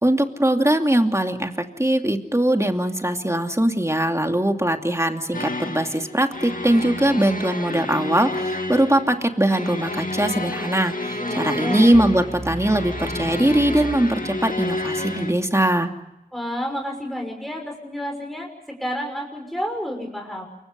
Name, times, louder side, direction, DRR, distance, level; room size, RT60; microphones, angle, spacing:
voice 1, 0.0-15.9, right 1 dB, 20° right, 4 dB, 2.6 m, -21 dB
sound 1, 5.3-15.3, left 2 dB, 60° left, 2.2 m, -30 dB
voice 2, 11.2-11.9 16.3-20.5, equal, ahead, 2 dB, 6.0 m, -30 dB
sound 2, 11.9-14.9, right 2 dB, 35° right, 1.6 m, -35 dB
28.5 x 24.5 x 5.5 m, 0.91 s
wide cardioid pair, 45°, 16 cm